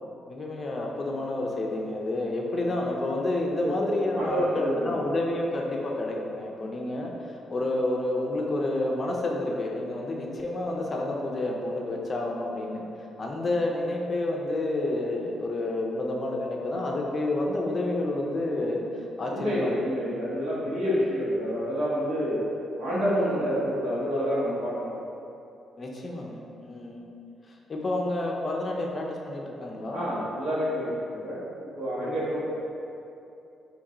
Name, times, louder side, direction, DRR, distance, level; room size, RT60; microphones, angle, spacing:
voice 1, 0.1-12.8 13.2-19.8 20.4-20.7 23.3-23.4 25.8-27.0 27.5-30.0 32.0-32.2, left 2 dB, 30° left, -1 dB, 0.5 m, -30 dB
voice 2, 4.1-5.0 19.3-22.4 22.8-24.9 29.9-31.4 31.7-32.4, equal, 80° right, -9 dB, 1.5 m, -28 dB
4.1 x 2.9 x 3.7 m, 2.8 s
cardioid pair, 135°, 0 cm